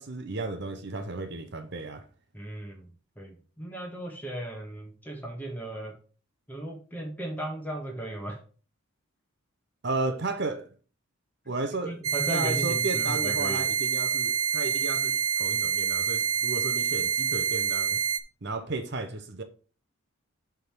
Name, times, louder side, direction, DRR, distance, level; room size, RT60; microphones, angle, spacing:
voice 1, 0.0-2.0 9.8-10.7 11.5-11.9 12.3-18.0 18.4-19.4, right 3 dB, 50° right, 0.8 m, -34 dB
voice 2, 2.3-6.0 6.5-8.4 11.8-13.7, right 1 dB, 10° left, 1.6 m, -36 dB
sound 1, 12.0-18.2, right 8 dB, 80° right, 0.9 m, -27 dB
8.4 x 3.7 x 6.0 m
head